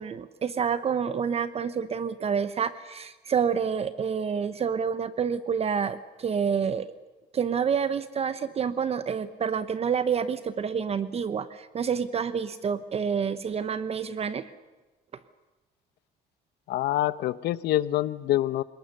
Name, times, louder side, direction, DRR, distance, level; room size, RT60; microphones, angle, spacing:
voice 1, 0.0-6.9 7.3-14.5, right 7 dB, 35° right, 13 dB, 0.9 m, -28 dB
voice 2, 16.7-18.6, left 14 dB, 75° left, 16 dB, 0.9 m, -26 dB
27.5 x 19.0 x 6.7 m, 1.2 s
cardioid pair, 110°, 17 cm